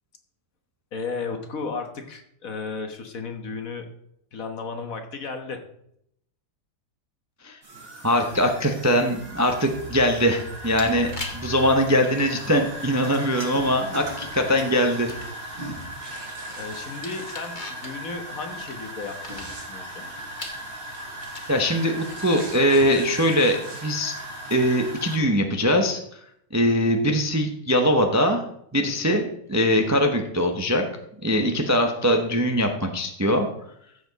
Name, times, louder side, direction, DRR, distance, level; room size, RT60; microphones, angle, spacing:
voice 1, 0.9-3.9 4.3-5.6 16.6-20.1, left 4 dB, 55° left, 6 dB, 1.6 m, -34 dB
sound 1, 7.6-25.2, right 1 dB, 60° right, 4.3 m, -37 dB
voice 2, 8.0-15.1 21.5-24.1 24.5-26.0 26.5-28.4 28.7-29.2 29.5-30.8 31.2-33.5, equal, 15° right, 4 dB, 0.6 m, -22 dB
sound 2, 10.5-22.6, left 2 dB, 30° left, 1.6 m, -45 dB
sound 3, 15.8-17.7 18.6-19.7 20.4-23.8, right 2 dB, 40° right, 2.3 m, -46 dB
14.5 x 7.0 x 4.1 m, 0.72 s
omnidirectional pair, 1.8 m